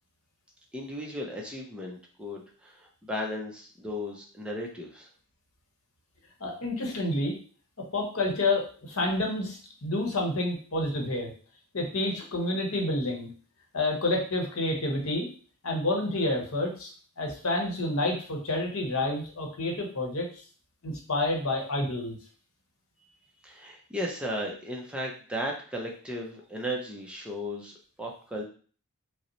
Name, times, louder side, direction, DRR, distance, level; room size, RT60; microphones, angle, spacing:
voice 1, 0.7-5.1 23.4-27.7 28.0-28.4, equal, 5° right, -1 dB, 0.5 m, -35 dB
voice 2, 6.4-7.4 7.9-11.3 11.7-13.3 13.7-15.3 15.6-16.9 17.2-20.4 20.8-22.2, left 2 dB, 65° left, 1 dB, 1.0 m, -29 dB
5.1 x 2.1 x 3.0 m, 0.41 s
head